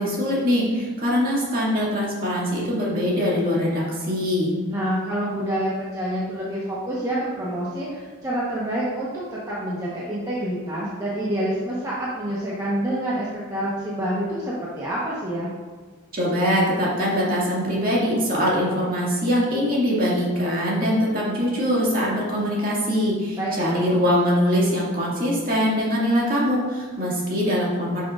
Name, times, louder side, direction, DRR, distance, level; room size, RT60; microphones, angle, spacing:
voice 1, 0.0-4.5 16.1-28.0, equal, 40° right, -5 dB, 2.1 m, -22 dB
voice 2, 4.7-15.5 23.3-23.9, right 1 dB, 15° right, -8 dB, 1.1 m, -27 dB
11.0 x 6.4 x 2.5 m, 1.4 s
head